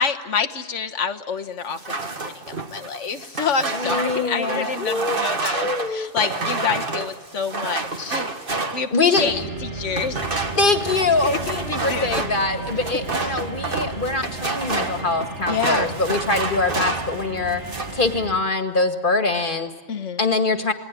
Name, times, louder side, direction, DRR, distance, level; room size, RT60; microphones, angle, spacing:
voice 1, 0.0-1.8 2.2-2.3 2.7-8.3 8.7-10.2 11.2-12.2 15.5-15.9 19.9-20.2, left 6 dB, 80° left, 7 dB, 1.5 m, -27 dB
sound 1, 1.7-9.4 9.9-17.2 17.5-18.1, right 3 dB, 50° right, 1.8 m, -29 dB
voice 2, 3.7-5.2 5.5-6.1 8.9-9.3 10.6-17.6 17.9-19.7 20.2-20.7, left 3 dB, 45° left, 7 dB, 1.9 m, -23 dB
sound 2, 9.2-18.4, right 3 dB, 75° right, 2.8 m, -34 dB
28.0 x 19.5 x 8.3 m, 1.3 s
omnidirectional pair, 1.2 m